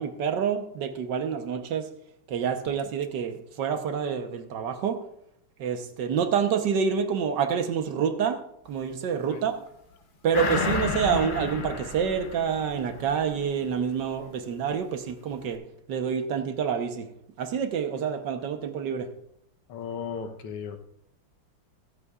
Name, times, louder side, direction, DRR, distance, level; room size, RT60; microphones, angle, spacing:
voice 1, 0.0-1.9 2.3-5.0 5.6-8.4 8.6-9.6 10.2-15.6 15.9-17.1 17.4-19.1, right 7 dB, 60° right, 7 dB, 1.5 m, -27 dB
sound 1, 10.3-13.2 13.6-13.7, left 4 dB, 50° left, 0.6 m, -31 dB
voice 2, 19.7-20.8, left 6 dB, 85° left, 6 dB, 1.9 m, -35 dB
23.0 x 8.2 x 2.4 m, 0.74 s
omnidirectional pair, 2.4 m